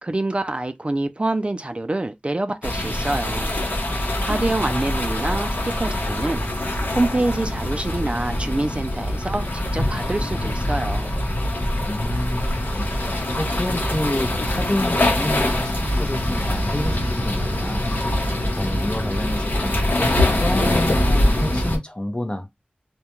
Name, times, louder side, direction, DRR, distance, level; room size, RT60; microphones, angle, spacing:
voice 1, 0.0-3.5 4.2-11.1, right 2 dB, 35° right, 0.3 m, -26 dB
sound 1, 2.6-21.8, left 1 dB, 75° left, 0.8 m, -23 dB
voice 2, 4.5-4.8 11.8-12.9 13.4-17.8 18.2-20.1 20.4-22.5, left 1 dB, 30° left, 0.6 m, -29 dB
2.3 x 2.1 x 2.9 m
wide cardioid pair, 40°, 3 cm